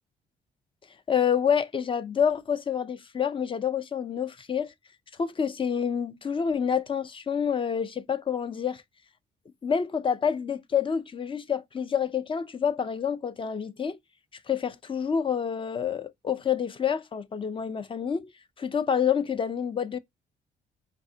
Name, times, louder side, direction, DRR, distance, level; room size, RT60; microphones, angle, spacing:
voice 1, 1.1-4.7 5.2-8.8 9.6-14.0 14.5-18.3 18.6-20.0, left 7 dB, 30° left, 0.5 m, -28 dB
5.1 x 3.2 x 2.7 m
cardioid pair, 90°, 17 cm